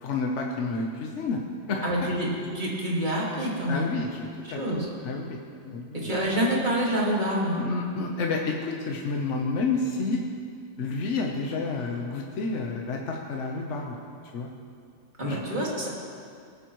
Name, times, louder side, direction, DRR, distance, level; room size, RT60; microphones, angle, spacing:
voice 1, 0.0-1.4 1.7-1.9 3.7-4.6 5.0-5.4 5.6-6.1 7.6-10.2 10.8-14.0 14.3-14.5 15.3-15.4, left 3 dB, 70° left, 1 dB, 1.2 m, -30 dB
voice 2, 1.8-4.0 4.4-4.9 5.9-7.6 15.2-15.9, right 1 dB, 40° right, -4 dB, 2.2 m, -27 dB
19.5 x 8.8 x 3.1 m, 2.3 s
omnidirectional pair, 1.3 m